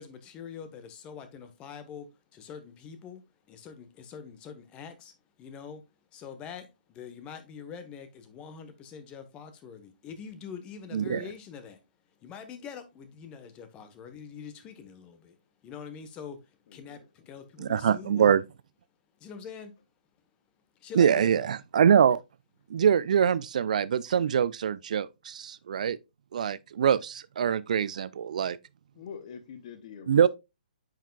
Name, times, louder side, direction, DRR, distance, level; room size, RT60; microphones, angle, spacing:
voice 1, 0.0-3.2 3.5-5.1 5.4-5.8 6.1-11.8 12.2-15.4 15.6-18.3 19.2-19.7 20.8-21.5, left 7 dB, 20° left, 1.1 m, -44 dB
voice 2, 10.9-11.2 17.6-18.4 20.9-22.2 22.7-26.0 26.3-28.6 30.1-30.3, right 8 dB, 55° right, 0.4 m, -24 dB
voice 3, 16.7-17.3 28.9-30.3, left 7 dB, 40° left, 1.0 m, -45 dB
9.0 x 5.7 x 2.3 m
figure-of-eight pair, 125°, 5 cm